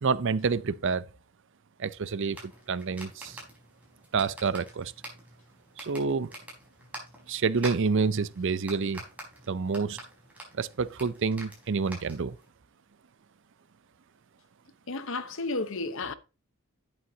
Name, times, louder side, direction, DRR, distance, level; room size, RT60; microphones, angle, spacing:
voice 1, 0.0-1.0 1.8-3.4 4.1-4.9 5.8-6.3 7.3-9.0 9.5-10.0 10.6-12.4, right 5 dB, 60° right, 0.6 m, -28 dB
sound 1, 2.3-12.5, right 1 dB, 5° right, 4.8 m, -47 dB
voice 2, 14.9-16.1, left 3 dB, 70° left, 1.1 m, -32 dB
11.5 x 8.7 x 2.8 m
head